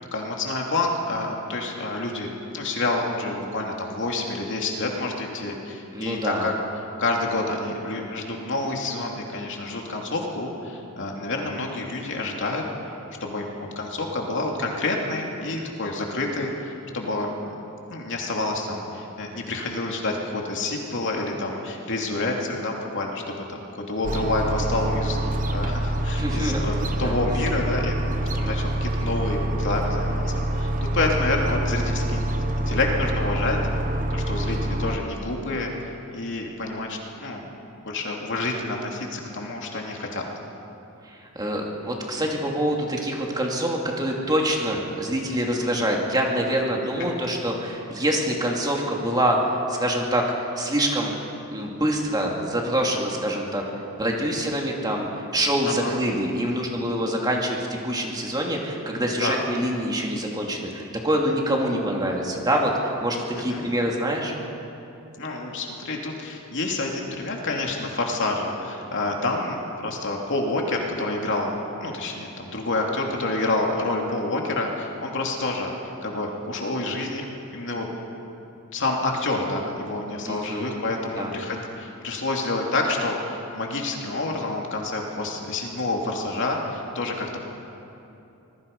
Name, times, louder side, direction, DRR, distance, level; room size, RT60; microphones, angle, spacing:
voice 1, 0.1-6.5 7.0-12.6 13.2-13.5 13.8-17.6 17.9-28.0 28.3-32.2 32.7-33.6 34.1-35.7 36.1-37.4 37.8-40.2 47.0-47.1 55.6-56.0 59.2-59.4 63.5-63.6 65.2-71.5 71.8-75.7 76.0-77.9 78.7-87.4, left 2 dB, 55° left, 0 dB, 2.9 m, -28 dB
voice 2, 5.9-6.5 26.1-27.1 41.1-51.1 51.5-53.6 54.0-64.3 80.2-80.7 81.1-81.3, right 1 dB, 20° right, -1 dB, 2.7 m, -25 dB
sound 1, 24.0-35.0, right 1 dB, 35° right, 1.2 m, -26 dB
25.5 x 21.0 x 5.5 m, 2.8 s
head